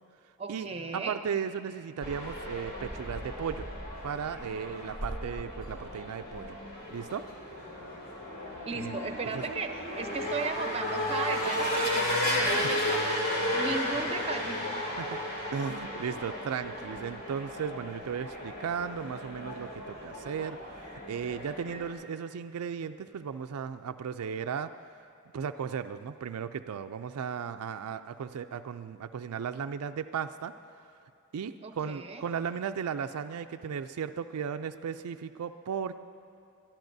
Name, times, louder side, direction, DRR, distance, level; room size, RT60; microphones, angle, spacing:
voice 1, 0.4-1.2 8.6-13.2 13.5-14.7 31.6-32.2, right 3 dB, 30° right, 6 dB, 0.7 m, -36 dB
voice 2, 0.9-3.7 4.0-6.5 6.9-7.2 8.8-9.0 9.3-9.5 15.0-15.2 15.5-24.7 25.3-30.8 31.3-36.0, right 7 dB, 85° right, 9 dB, 0.4 m, -36 dB
sound 1, 2.0-21.9, left 1 dB, 45° left, 2.5 m, -34 dB
22.0 x 13.0 x 2.7 m, 2.6 s
head